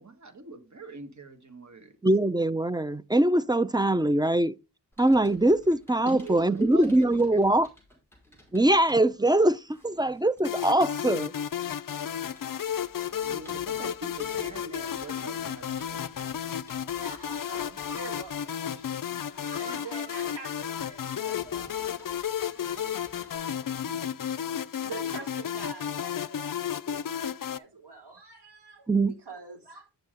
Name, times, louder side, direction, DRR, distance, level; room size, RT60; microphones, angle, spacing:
voice 1, 0.0-2.0 6.1-7.4 13.2-16.0, right 4 dB, 40° right, 1.8 m, -42 dB
voice 2, 2.0-4.5 5.0-7.7 8.5-11.3 28.9-29.1, right 1 dB, 10° right, 0.3 m, -22 dB
Computer keyboard, 4.9-23.4, equal, 5° left, 5.1 m, -56 dB
sound 1, 10.4-27.6, left 9 dB, 50° left, 0.5 m, -33 dB
voice 3, 17.0-18.9 19.2-21.8 22.3-23.1 23.5-24.5 24.8-26.6 26.9-28.9 29.3-29.9, right 3 dB, 70° right, 4.2 m, -45 dB
9.0 x 7.2 x 3.8 m
wide cardioid pair, 105°, 42 cm